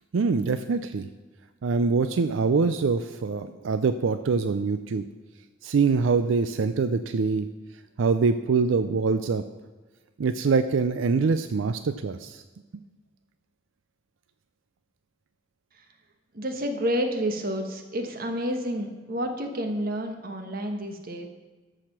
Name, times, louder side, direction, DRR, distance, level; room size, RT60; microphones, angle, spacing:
voice 1, 0.1-1.1 1.6-5.0 5.6-7.5 8.0-9.4 10.2-12.4, right 4 dB, 85° right, 10 dB, 0.4 m, -24 dB
voice 2, 16.3-21.3, equal, 50° right, 5 dB, 1.2 m, -29 dB
13.0 x 5.0 x 5.9 m, 1.3 s
head